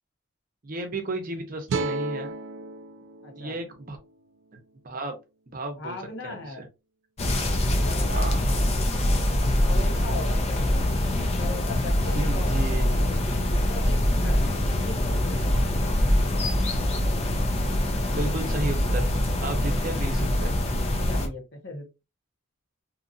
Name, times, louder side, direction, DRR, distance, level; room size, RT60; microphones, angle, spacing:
voice 1, 0.6-2.3 3.4-4.0 4.5-4.6 4.8-5.2 5.5-6.0 6.2-6.7 8.1-8.4 12.1-13.0 18.1-19.1 19.4-20.5, right 2 dB, 45° right, 5 dB, 0.7 m, -33 dB
sound 1, 1.7-4.9, right 3 dB, 65° right, 0.3 m, -34 dB
voice 2, 3.2-3.6 5.8-6.7 7.6-10.8 11.1-15.9 21.1-21.9, left 2 dB, 60° left, 4 dB, 0.9 m, -39 dB
sound 2, 7.2-21.3, left 1 dB, 30° left, 0.5 m, -24 dB
2.8 x 2.5 x 2.5 m, 0.26 s
head